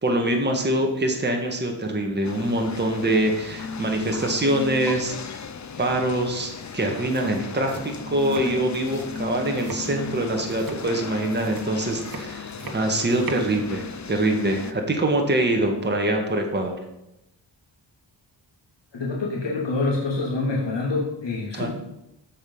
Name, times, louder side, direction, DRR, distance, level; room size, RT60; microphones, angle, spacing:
voice 1, 0.0-5.4 5.8-16.8 21.5-21.7, right 1 dB, 25° right, 2 dB, 1.8 m, -24 dB
sound 1, 2.2-14.7, left 5 dB, 40° left, 0.7 m, -36 dB
sound 2, 4.0-4.3 4.6-4.9 6.6-6.7 7.0-13.5, right 3 dB, 50° right, 1.4 m, -40 dB
voice 2, 18.9-21.7, left 3 dB, 70° left, -4 dB, 2.6 m, -26 dB
15.0 x 5.4 x 5.6 m, 0.86 s
wide cardioid pair, 120°, 45 cm